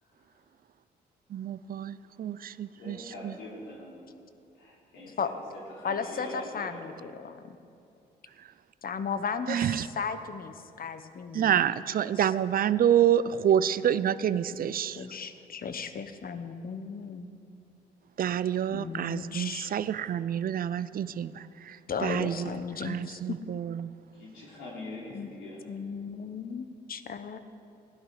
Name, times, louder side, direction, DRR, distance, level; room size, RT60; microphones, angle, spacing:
voice 1, 1.3-3.3 9.5-9.9 11.3-15.0 18.2-23.9, right 10 dB, 50° right, 16 dB, 0.5 m, -28 dB
voice 2, 2.7-4.1 4.5-5.2 5.5-7.0 24.1-25.6, left 2 dB, 80° left, -5 dB, 3.4 m, -43 dB
voice 3, 5.8-7.6 8.8-11.8 14.0-17.3 18.7-19.7 21.9-23.2 25.1-25.3 25.7-27.4, left 6 dB, 50° left, 10 dB, 1.0 m, -36 dB
16.0 x 11.0 x 4.9 m, 2.5 s
supercardioid pair, 55°, 19 cm